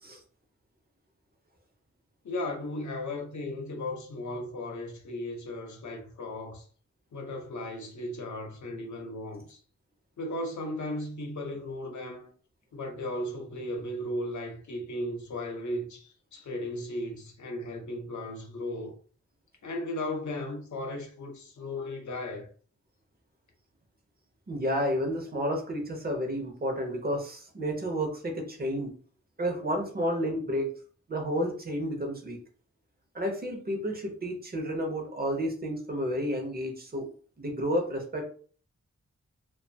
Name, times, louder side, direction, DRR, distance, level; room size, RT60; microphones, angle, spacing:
voice 1, 2.2-6.7 7.1-9.6 10.2-12.3 12.7-18.9 19.6-22.5, left 1 dB, 75° left, 0.7 m, -36 dB
voice 2, 24.5-28.9 29.4-30.7 31.1-32.4 33.1-37.1 37.4-38.3, equal, 35° right, 0.6 m, -31 dB
2.5 x 2.2 x 2.7 m
wide cardioid pair, 130°, 29 cm